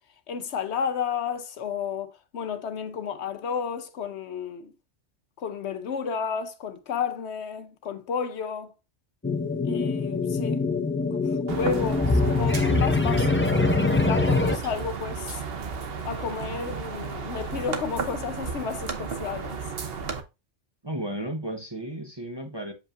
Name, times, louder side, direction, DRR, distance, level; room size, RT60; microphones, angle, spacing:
voice 1, 0.3-4.7 5.4-8.7 9.6-10.6 11.1-15.4 16.1-19.6, left 6 dB, 65° left, 1.0 m, -32 dB
sound 1, 9.2-14.6, left 3 dB, 20° left, 0.3 m, -24 dB
voice 2, 11.5-12.0 20.8-22.7, right 1 dB, 25° right, 0.9 m, -34 dB
sound 2, 11.5-20.2, right 5 dB, 55° right, 1.0 m, -34 dB
7.2 x 5.3 x 2.5 m
omnidirectional pair, 1.2 m